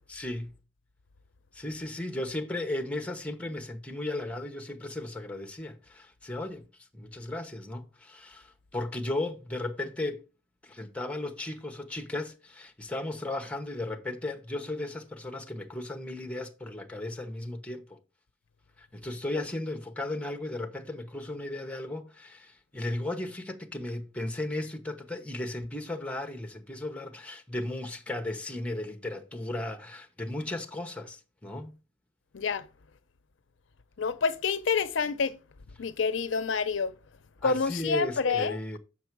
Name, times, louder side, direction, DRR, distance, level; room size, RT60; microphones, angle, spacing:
voice 1, 0.1-0.6 1.5-6.7 6.9-10.2 10.6-17.8 18.8-31.7 37.4-38.8, left 2 dB, 5° left, 1.0 m, -35 dB
voice 2, 32.3-32.6 34.0-35.4 35.8-36.9 37.4-38.8, left 5 dB, 70° left, 0.5 m, -28 dB
7.0 x 5.9 x 4.6 m
head